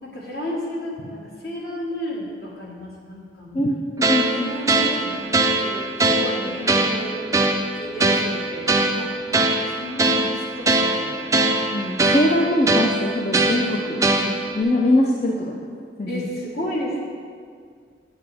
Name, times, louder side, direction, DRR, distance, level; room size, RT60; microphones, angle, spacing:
voice 1, 0.0-3.6 4.3-7.2 7.5-9.1 9.7-11.5 16.1-17.0, equal, 60° left, -3 dB, 1.7 m, -33 dB
sound 1, 4.0-14.6, right 2 dB, 20° right, 0.4 m, -22 dB
voice 2, 4.1-4.5 8.0-8.1 11.7-15.6 16.0-16.3, left 1 dB, 35° left, -1 dB, 0.5 m, -22 dB
8.5 x 8.0 x 3.5 m, 2.1 s
head